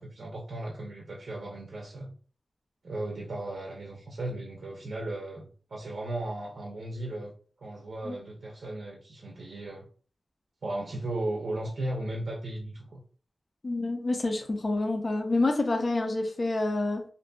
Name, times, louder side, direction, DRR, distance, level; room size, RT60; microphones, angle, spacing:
voice 1, 0.0-2.1 2.8-7.3 7.6-9.9 10.6-13.0, right 1 dB, 75° right, -1 dB, 0.5 m, -36 dB
voice 2, 13.6-17.0, left 2 dB, 50° left, 4 dB, 0.5 m, -28 dB
2.6 x 2.5 x 2.2 m, 0.42 s
wide cardioid pair, 110°, 0 cm